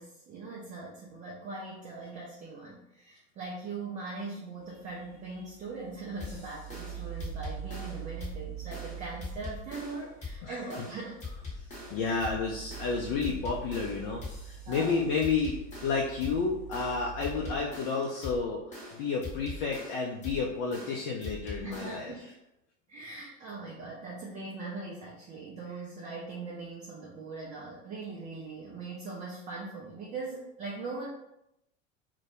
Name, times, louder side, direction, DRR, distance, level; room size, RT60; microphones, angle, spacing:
voice 1, 0.0-11.2 12.0-12.2 13.3-13.4 14.6-15.0 21.6-22.3 22.9-31.1, right 3 dB, 20° right, -3 dB, 0.3 m, -41 dB
sound 1, 4.7-17.6, right 10 dB, 40° right, 0.8 m, -44 dB
sound 2, 6.2-22.2, left 3 dB, 20° left, 0.9 m, -43 dB
voice 2, 11.9-22.1, left 4 dB, 50° left, -1 dB, 0.5 m, -31 dB
2.1 x 2.1 x 2.9 m, 0.82 s
figure-of-eight pair, 85°, 38 cm